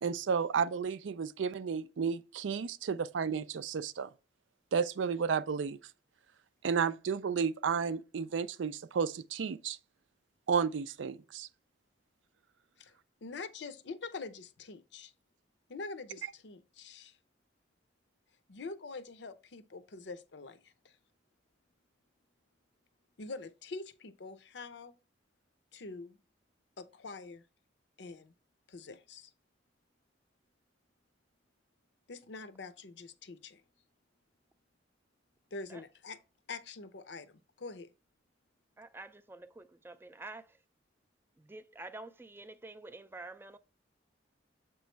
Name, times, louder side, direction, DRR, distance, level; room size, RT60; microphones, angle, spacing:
voice 1, 0.0-4.1 4.7-5.8 6.6-9.8 10.5-11.5, right 6 dB, 80° right, 0.4 m, -32 dB
voice 2, 13.2-15.1 15.7-17.2 18.5-21.0 23.2-24.9 25.7-26.2 26.8-27.4 28.0-28.3 28.7-29.3 32.1-33.6 35.5-36.2 36.5-37.9, left 3 dB, 65° left, 0.6 m, -45 dB
voice 3, 38.8-40.6 41.4-43.6, right 2 dB, 10° right, 0.3 m, -48 dB
7.4 x 3.1 x 4.4 m
head